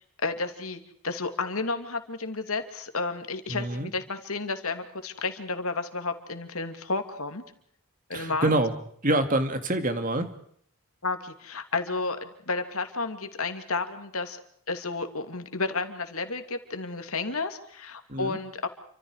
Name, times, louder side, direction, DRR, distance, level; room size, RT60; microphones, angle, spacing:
voice 1, 0.0-7.4 8.1-8.5 11.0-14.4 14.7-18.7, left 3 dB, 75° left, 7 dB, 2.7 m, -32 dB
voice 2, 3.5-3.9 8.1-8.7 9.0-10.3 18.1-18.4, right 2 dB, 35° right, 8 dB, 2.3 m, -26 dB
29.5 x 25.5 x 4.9 m, 0.65 s
head